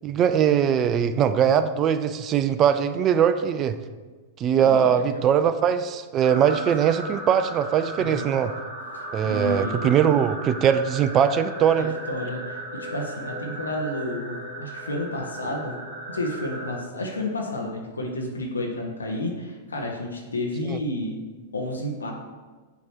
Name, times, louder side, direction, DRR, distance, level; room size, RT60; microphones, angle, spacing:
voice 1, 0.0-3.8 4.4-8.5 9.1-11.9 20.7-20.8, right 8 dB, 30° right, 11 dB, 0.3 m, -21 dB
voice 2, 4.6-5.3 8.0-8.2 8.9-9.9 11.8-15.8 16.1-21.2 21.5-22.1, left 1 dB, 85° left, 0 dB, 0.8 m, -31 dB
sound 1, 6.2-16.7, right 1 dB, 65° right, 1.9 m, -36 dB
7.0 x 3.0 x 4.6 m, 1.3 s
figure-of-eight pair, 100°, 0 cm